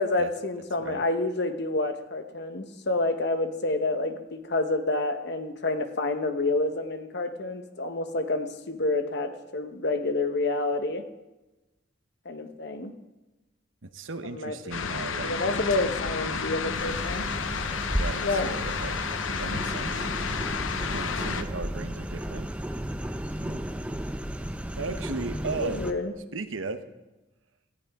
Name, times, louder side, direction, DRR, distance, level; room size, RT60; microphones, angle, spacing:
voice 1, 0.0-11.0 12.2-12.9 14.3-14.6 15.2-17.3 18.2-18.5 25.6-26.1, left 2 dB, 60° left, 8 dB, 1.2 m, -28 dB
voice 2, 13.8-15.3 15.7-17.0 17.9-19.0 19.4-20.1 20.9-22.5 23.4-23.6 24.8-25.8 26.3-26.8, right 3 dB, 75° right, 10 dB, 1.0 m, -36 dB
sound 1, 14.7-21.4, left 5 dB, 85° left, 0.9 m, -31 dB
sound 2, 16.7-25.9, equal, 5° right, 0.7 m, -34 dB
17.5 x 14.0 x 3.7 m, 1.1 s
head